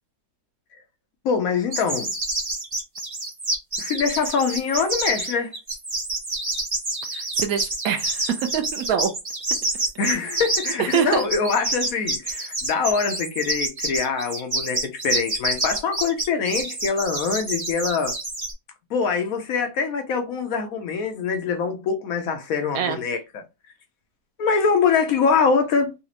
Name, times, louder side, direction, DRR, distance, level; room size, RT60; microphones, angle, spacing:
voice 1, 1.2-2.1 3.8-5.5 10.0-18.1 18.9-23.4 24.4-25.9, left 5 dB, 70° left, 1.0 m, -24 dB
sound 1, 1.7-18.5, right 2 dB, 20° right, 0.9 m, -28 dB
voice 2, 7.1-9.1 10.8-11.2 22.7-23.0, right 8 dB, 70° right, 1.0 m, -24 dB
4.1 x 2.4 x 2.8 m
omnidirectional pair, 1.7 m